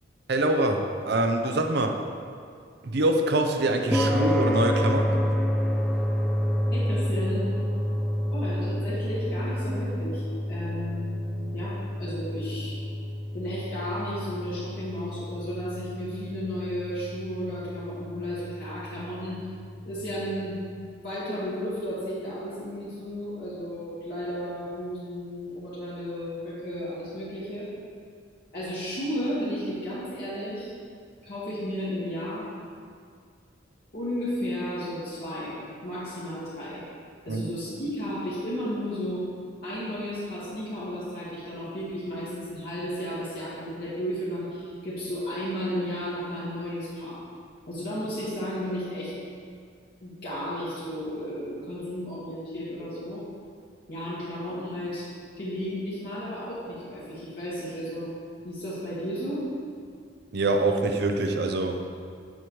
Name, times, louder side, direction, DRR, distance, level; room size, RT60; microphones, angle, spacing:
voice 1, 0.3-2.0 2.8-5.2 37.3-37.4 60.3-61.8, right 2 dB, 60° right, 5 dB, 0.6 m, -25 dB
sound 1, 3.9-20.4, equal, 5° left, 0.4 m, -29 dB
voice 2, 6.7-7.5 8.3-12.8 13.3-19.4 19.8-20.6 20.9-27.7 28.5-30.7 31.2-32.5 33.9-36.8 37.3-39.3 39.6-47.2 47.7-49.1 50.0-53.3 53.9-55.1 55.4-58.1 58.4-59.5, equal, 55° left, -10 dB, 1.8 m, -33 dB
7.8 x 6.7 x 3.1 m, 2.2 s
head